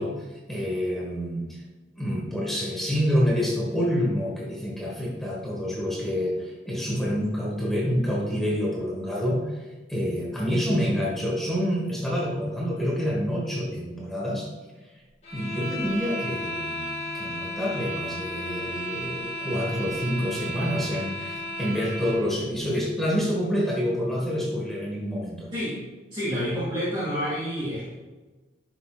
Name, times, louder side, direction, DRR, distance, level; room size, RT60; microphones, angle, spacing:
voice 1, 0.0-1.6 2.0-14.5 15.3-25.5, equal, ahead, -4 dB, 1.4 m, -27 dB
sound 1, 15.2-22.3, equal, 35° left, 2.2 m, -34 dB
voice 2, 26.1-27.9, equal, 25° right, -10 dB, 2.3 m, -28 dB
11.0 x 6.1 x 2.5 m, 1.2 s
head